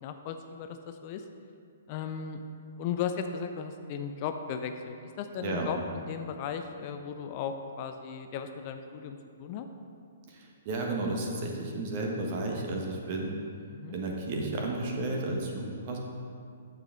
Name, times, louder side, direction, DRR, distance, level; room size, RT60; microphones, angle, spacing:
voice 1, 0.0-1.2 1.9-2.4 2.8-9.7 13.7-13.9, left 7 dB, 35° left, 7 dB, 0.5 m, -36 dB
voice 2, 10.3-13.4 13.9-16.0, right 2 dB, 40° right, 0 dB, 1.5 m, -33 dB
9.0 x 7.3 x 3.8 m, 2.3 s
figure-of-eight pair, 120°, 0 cm